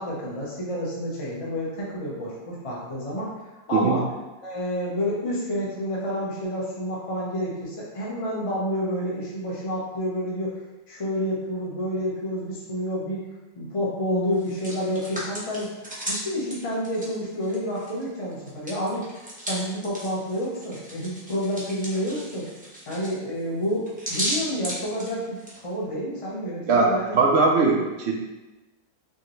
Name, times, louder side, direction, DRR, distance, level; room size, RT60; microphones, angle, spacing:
voice 1, 0.0-3.3 3.7-4.0 4.4-10.6 10.9-13.2 13.5-15.7 16.1-19.0 19.4-22.5 22.9-27.2, equal, 25° left, -5 dB, 0.8 m, -29 dB
Hands, 14.3-18.0 18.3-25.6, equal, 5° right, 0.7 m, -35 dB
voice 2, 27.1-28.1, right 4 dB, 65° right, 0 dB, 0.6 m, -20 dB
4.6 x 3.0 x 3.1 m, 1.1 s
omnidirectional pair, 1.7 m